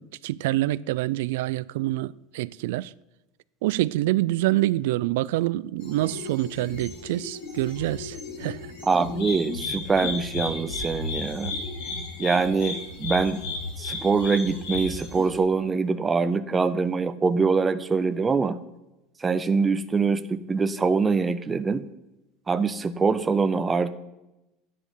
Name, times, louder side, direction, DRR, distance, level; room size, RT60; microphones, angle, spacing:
voice 1, 0.0-2.9 3.6-8.7, right 16 dB, 80° right, 0.4 m, -26 dB
sound 1, 5.8-15.4, left 3 dB, 85° left, 5.3 m, -34 dB
voice 2, 8.8-11.5 12.2-13.4 13.8-18.6 19.2-21.8 22.5-23.9, right 4 dB, 10° right, 0.5 m, -24 dB
13.5 x 9.9 x 5.6 m
cardioid pair, 175°, 0 cm